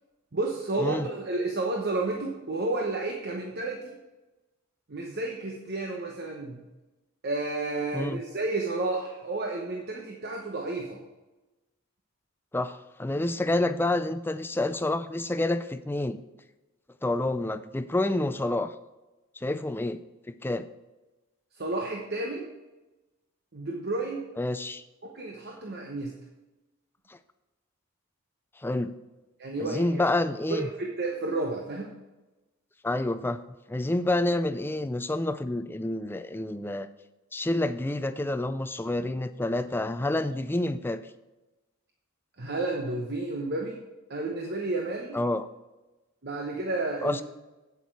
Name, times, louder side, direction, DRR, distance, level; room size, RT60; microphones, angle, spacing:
voice 1, 0.3-4.0 4.9-6.6 7.2-11.0 21.6-22.5 23.5-24.3 25.0-26.1 29.4-30.0 30.5-32.0 42.4-43.8 44.1-45.2 46.2-47.2, right 2 dB, 50° right, 1 dB, 0.9 m, -31 dB
voice 2, 12.5-16.2 17.0-18.7 19.4-20.0 20.4-20.7 24.4-24.8 27.1-27.2 28.6-28.9 29.6-30.7 32.8-33.4 33.7-36.9 37.3-41.0 45.1-45.5 47.0-47.2, left 2 dB, 10° left, 11 dB, 0.3 m, -28 dB
8.4 x 8.1 x 4.6 m, 1.1 s
head